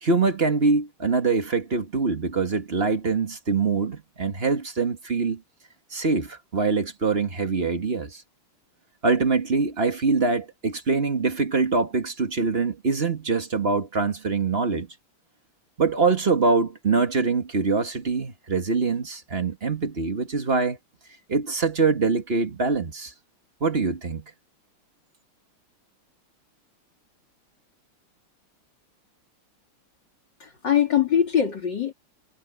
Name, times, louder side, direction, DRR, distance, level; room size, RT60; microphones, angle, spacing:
voice 1, 0.0-5.4 5.9-8.2 9.0-14.9 15.8-20.8 21.3-23.1 23.6-24.2, right 4 dB, 30° right, 1.6 m, -24 dB
voice 2, 30.4-31.9, left 9 dB, 55° left, 3.1 m, -22 dB
omnidirectional pair, 2.4 m